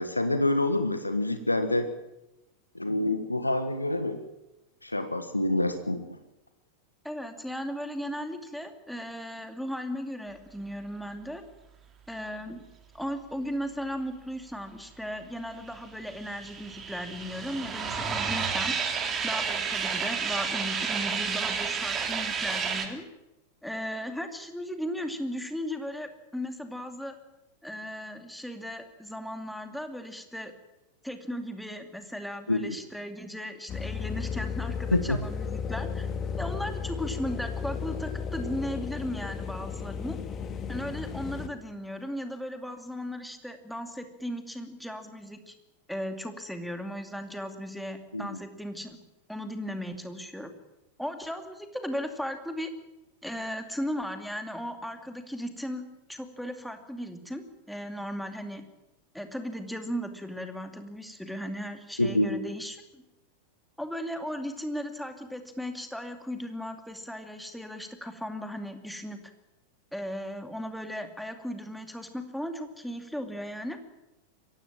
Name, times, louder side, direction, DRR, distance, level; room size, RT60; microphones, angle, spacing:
voice 1, 0.0-1.9 2.7-4.2 4.8-6.0 32.5-32.8 34.9-35.2 48.1-48.4 62.0-62.3, left 1 dB, 85° left, 9 dB, 1.4 m, -27 dB
voice 2, 7.0-11.4 12.1-12.6 12.9-18.7 19.2-23.1 23.6-27.2 27.6-30.5 31.0-36.1 36.4-40.2 40.7-45.5 45.9-49.0 49.3-50.5 51.0-52.7 53.2-58.6 59.1-63.0 63.8-69.2 69.9-73.8, equal, ahead, 6 dB, 2.6 m, -36 dB
sound 1, 15.7-22.9, right 6 dB, 25° right, 3.3 m, -31 dB
sound 2, 33.7-41.5, left 6 dB, 25° left, 2.1 m, -34 dB
23.5 x 17.0 x 8.9 m, 0.96 s
figure-of-eight pair, 90°, 0 cm